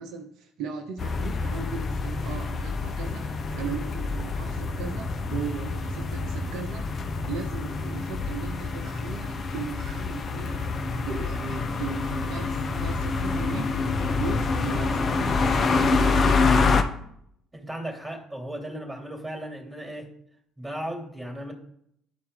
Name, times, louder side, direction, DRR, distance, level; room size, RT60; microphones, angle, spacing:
voice 1, 0.0-6.9 7.3-16.5, right 6 dB, 65° right, 5 dB, 0.8 m, -38 dB
sound 1, 1.0-16.8, left 4 dB, 45° left, 0.9 m, -27 dB
voice 2, 17.5-20.1 20.6-21.5, right 1 dB, 10° right, 2 dB, 2.7 m, -36 dB
11.5 x 4.3 x 3.7 m, 0.71 s
hypercardioid pair, 55°, 0 cm